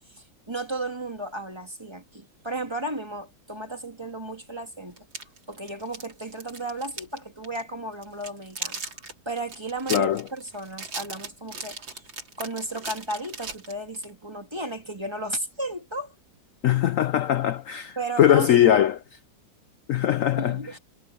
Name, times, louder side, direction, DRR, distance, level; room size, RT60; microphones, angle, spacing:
voice 1, 0.1-5.1 5.5-8.9 9.2-12.0 12.4-16.1 17.9-18.8 20.4-20.8, right 2 dB, 15° right, 1.7 m, -34 dB
sound 1, 5.0-7.2 7.4-7.6 8.0-14.1, right 4 dB, 85° right, 4.2 m, -37 dB
voice 2, 9.9-10.2 16.6-19.0 19.9-20.6, left 11 dB, 75° left, 0.7 m, -21 dB
omnidirectional pair, 2.0 m